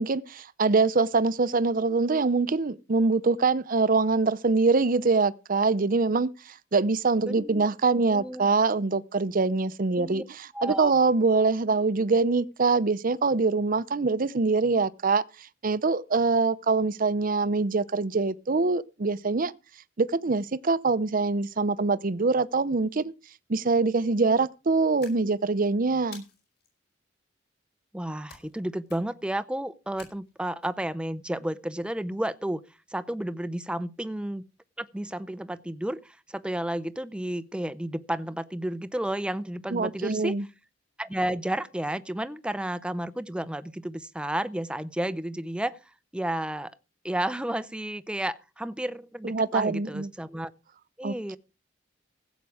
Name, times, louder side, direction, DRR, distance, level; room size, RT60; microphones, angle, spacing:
voice 1, 0.0-19.5 20.0-23.1 23.5-26.2 39.7-40.4 49.2-50.1 51.0-51.4, right 3 dB, 45° right, 0.6 m, -24 dB
voice 2, 7.2-7.7 8.1-8.5 10.0-10.3 10.5-10.9 27.9-32.6 32.9-34.4 34.8-40.4 41.0-45.8 46.1-46.7 47.0-50.5 51.0-51.4, right 1 dB, 5° right, 0.5 m, -32 dB
sound 1, 25.0-25.6 26.1-26.7 28.3-28.6 28.9-29.3 30.0-30.7, left 5 dB, 55° left, 4.9 m, -49 dB
15.5 x 8.2 x 4.8 m
head